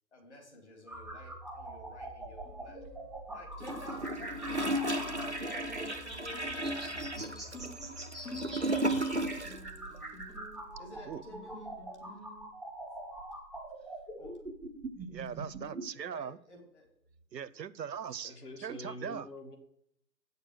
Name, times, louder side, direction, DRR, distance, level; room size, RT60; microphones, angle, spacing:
voice 1, 0.1-2.8 3.3-7.8 10.8-11.7 14.2-14.3 16.1-16.9 17.3-17.5, left 1 dB, 40° left, 0 dB, 2.7 m, -51 dB
sound 1, 0.9-15.8, right 2 dB, ahead, 0.6 m, -44 dB
Guitar, 2.4-12.5, left 1 dB, 80° left, 4.7 m, -51 dB
Gurgling / Toilet flush, 3.6-9.7 9.9-10.0, right 1 dB, 45° right, 0.4 m, -34 dB
voice 2, 15.1-16.4 17.3-19.3, right 8 dB, 75° right, 16 dB, 0.7 m, -40 dB
voice 3, 18.2-19.6, left 2 dB, 65° left, 5 dB, 2.2 m, -45 dB
8.7 x 6.7 x 6.2 m, 0.72 s
figure-of-eight pair, 170°, 50 cm